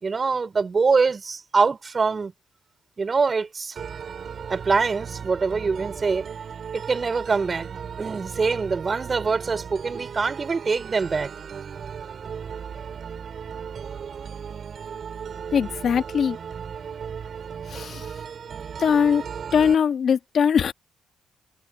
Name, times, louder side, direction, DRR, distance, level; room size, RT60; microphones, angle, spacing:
voice 1, 0.0-2.3 3.0-3.8 4.5-6.3 6.7-7.7 8.0-11.3, right 4 dB, 35° right, 5.2 m, -24 dB
sound 1, 3.8-19.8, right 7 dB, 50° right, 7.0 m, -36 dB
voice 2, 15.5-16.4 17.7-18.1 18.8-19.2 19.5-20.7, left 7 dB, 55° left, 1.9 m, -21 dB
cardioid pair, 90°, 0 cm